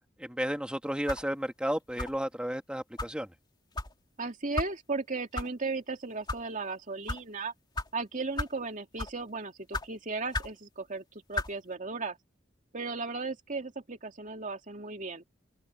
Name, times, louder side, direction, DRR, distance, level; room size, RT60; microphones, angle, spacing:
voice 1, 0.2-3.3, equal, 5° right, 2.2 m, -33 dB
sound 1, 1.1-1.3 2.0-2.3 3.0-3.1 3.8-3.9 4.6-4.7 5.3-5.5 6.1-6.4 7.1-7.2 7.8-7.9 8.4-8.6 9.0-9.2 9.7-9.9 10.3-10.6 11.3-11.5, left 2 dB, 25° left, 2.7 m, -34 dB
voice 2, 4.2-7.5 7.9-11.0 11.3-12.2 12.7-15.2, right 3 dB, 45° right, 2.4 m, -36 dB
open air
head